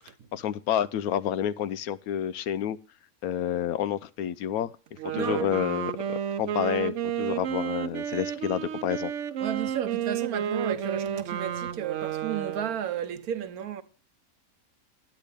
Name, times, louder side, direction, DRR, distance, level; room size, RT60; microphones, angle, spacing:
voice 1, 0.3-2.8 3.2-4.7 5.1-5.9 6.4-9.1, left 10 dB, 80° left, 1.1 m, -29 dB
Wind instrument woodwind instrument, 4.9-12.8, right 9 dB, 65° right, 1.0 m, -31 dB
voice 2, 5.1-5.5 9.4-13.8, right 9 dB, 85° right, 1.4 m, -33 dB
10.0 x 9.1 x 3.4 m
omnidirectional pair, 1.5 m